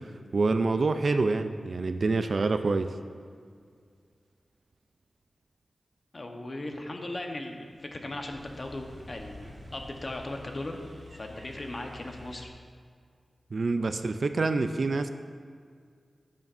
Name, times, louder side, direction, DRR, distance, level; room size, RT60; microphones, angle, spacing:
voice 1, 0.3-2.9 13.5-15.1, right 3 dB, 60° right, 9 dB, 0.4 m, -26 dB
voice 2, 6.1-10.8 11.1-12.5, left 2 dB, 40° left, 3 dB, 0.9 m, -38 dB
sound 1, 7.5-12.4, left 1 dB, 25° right, 2.3 m, -48 dB
13.5 x 7.2 x 2.6 m, 2.1 s
wide cardioid pair, 90°, 0 cm